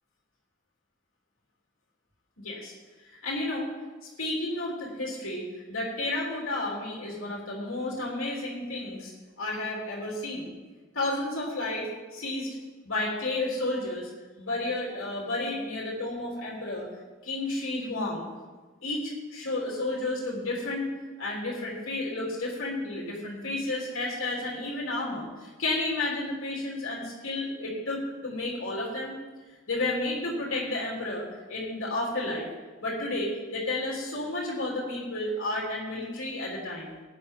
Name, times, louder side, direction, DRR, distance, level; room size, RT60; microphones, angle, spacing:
voice 1, 2.4-2.7 3.2-3.7 4.2-9.1 9.4-10.5 10.9-12.5 12.8-14.1 14.4-16.9 17.2-18.3 18.8-20.9 21.2-29.2 29.7-32.5 32.8-36.9, left 2 dB, 90° left, -4 dB, 3.2 m, -32 dB
15.5 x 10.0 x 3.7 m, 1.3 s
head